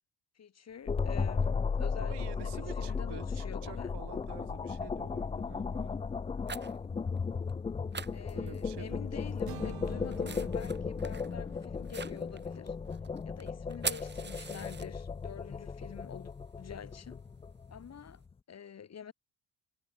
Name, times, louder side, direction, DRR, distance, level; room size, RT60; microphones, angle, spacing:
voice 1, 0.4-3.9 8.1-12.8 13.3-16.3 16.6-17.2 17.7-18.2 18.5-19.1, left 8 dB, 40° left, 2.1 m, -47 dB
sound 1, 0.9-18.1, left 5 dB, 15° left, 0.3 m, -36 dB
voice 2, 2.0-5.9 8.3-9.4, right 15 dB, 90° right, 2.5 m, -49 dB
sound 2, 3.3-3.4 4.2-4.5 5.0-5.3 6.1-6.9 7.2-7.3 7.5-7.6 7.9-9.0 9.3-15.3 15.6-18.1, right 5 dB, 25° right, 1.9 m, -44 dB
sound 3, 9.5-13.5, right 14 dB, 60° right, 0.8 m, -51 dB
cardioid pair, 135°, 39 cm